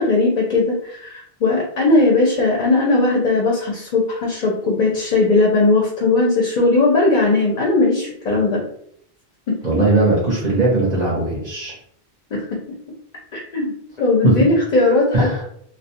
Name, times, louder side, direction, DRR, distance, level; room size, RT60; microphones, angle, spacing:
voice 1, 0.0-8.6 12.3-12.4 13.3-15.3, left 3 dB, 55° left, -2 dB, 0.6 m, -18 dB
voice 2, 9.6-11.7 14.2-14.4 15.1-15.4, right 2 dB, 45° right, -5 dB, 0.7 m, -18 dB
2.3 x 2.1 x 2.7 m, 0.68 s
omnidirectional pair, 1.1 m